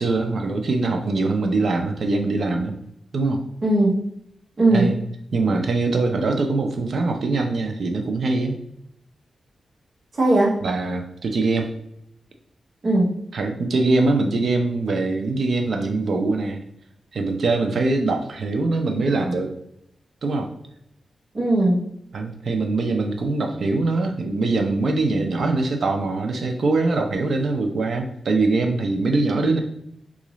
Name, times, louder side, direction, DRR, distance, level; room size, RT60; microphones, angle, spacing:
voice 1, 0.0-2.7 3.1-3.4 4.7-5.0 5.3-8.6 10.6-11.7 13.3-16.6 17.1-19.5 20.2-20.5 22.1-29.6, right 3 dB, 55° right, 4 dB, 0.5 m, -22 dB
voice 2, 3.6-4.0 4.6-4.9 10.2-10.6 12.8-13.2 21.3-21.8, right 2 dB, 40° right, -4 dB, 1.0 m, -18 dB
3.8 x 2.5 x 3.0 m, 0.76 s
wide cardioid pair, 160°, 0 cm